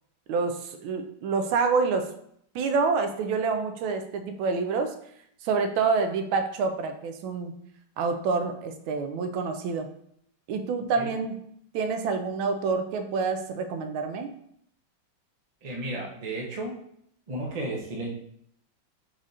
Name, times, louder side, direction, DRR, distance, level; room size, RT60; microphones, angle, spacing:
voice 1, 0.3-2.1 2.5-4.9 5.4-7.6 8.0-9.9 10.5-11.4 11.7-14.3, right 4 dB, 85° right, 7 dB, 1.4 m, -27 dB
voice 2, 15.6-16.7 17.3-18.1, right 1 dB, 55° right, -1 dB, 0.4 m, -33 dB
4.9 x 2.5 x 4.1 m, 0.70 s
omnidirectional pair, 2.2 m